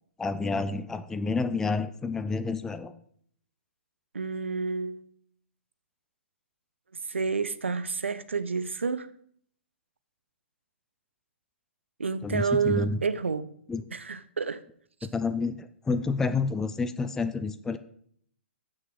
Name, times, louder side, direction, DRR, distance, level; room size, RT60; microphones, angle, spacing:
voice 1, 0.2-2.9 12.2-13.0 13.7-13.8 15.0-17.8, left 4 dB, 5° left, 0.5 m, -29 dB
voice 2, 4.1-5.1 6.9-9.1 12.0-13.4 13.9-14.6, right 5 dB, 75° right, 0.9 m, -29 dB
14.5 x 6.4 x 4.8 m
figure-of-eight pair, 125°, 7 cm